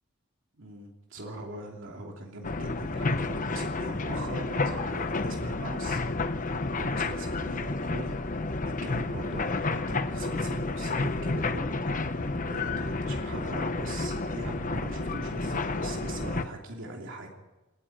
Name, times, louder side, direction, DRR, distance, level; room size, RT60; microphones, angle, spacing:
voice 1, 0.6-12.0 12.5-17.3, right 1 dB, 60° right, 0 dB, 2.9 m, -41 dB
sound 1, 2.4-16.4, left 3 dB, 35° left, 0.9 m, -30 dB
28.0 x 10.5 x 9.0 m, 1.1 s
head